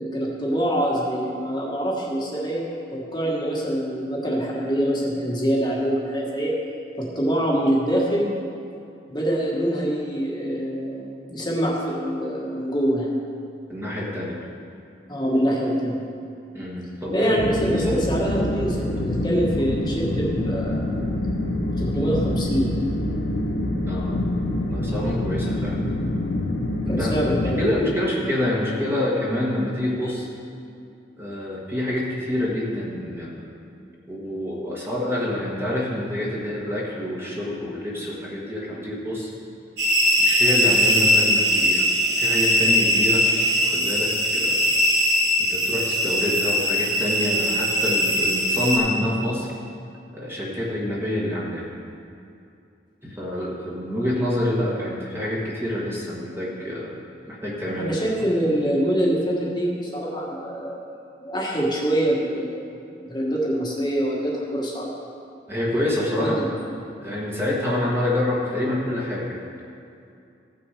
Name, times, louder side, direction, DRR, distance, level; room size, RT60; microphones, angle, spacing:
voice 1, 0.0-2.6 2.9-6.6 7.0-8.4 9.1-13.1 15.1-16.0 17.1-20.8 21.8-22.7 26.9-27.6 57.8-60.8 61.2-62.7 62.9-64.9 66.2-66.4, right 1 dB, 25° left, -4 dB, 1.5 m, -25 dB
voice 2, 13.7-14.4 16.5-17.3 17.6-18.0 23.9-24.2 24.7-25.8 26.9-30.3 31.2-33.4 34.1-39.3 40.2-41.9 42.2-43.2 43.6-44.6 45.4-49.5 50.2-51.7 53.0-56.9 57.3-58.0 65.5-66.5 67.0-69.5, left 1 dB, 15° right, -5 dB, 1.5 m, -27 dB
sound 1, 17.4-27.6, left 1 dB, 85° left, 1.3 m, -26 dB
sound 2, 39.8-48.8, equal, 75° right, 2.3 m, -20 dB
15.0 x 6.1 x 4.9 m, 2.6 s
head